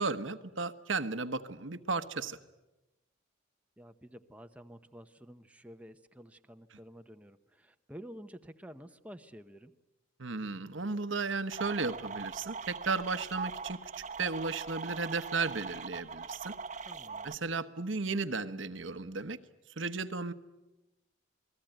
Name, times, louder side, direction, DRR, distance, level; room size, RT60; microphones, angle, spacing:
voice 1, 0.0-2.4 10.2-13.8 14.2-16.5 17.2-19.4 19.8-20.3, right 4 dB, 70° right, 11 dB, 1.2 m, -34 dB
voice 2, 3.8-9.7 16.9-17.4, equal, 5° right, 7 dB, 0.9 m, -50 dB
sound 1, 11.5-17.4, right 5 dB, 35° right, 1.1 m, -41 dB
28.5 x 20.5 x 9.1 m, 1.0 s
head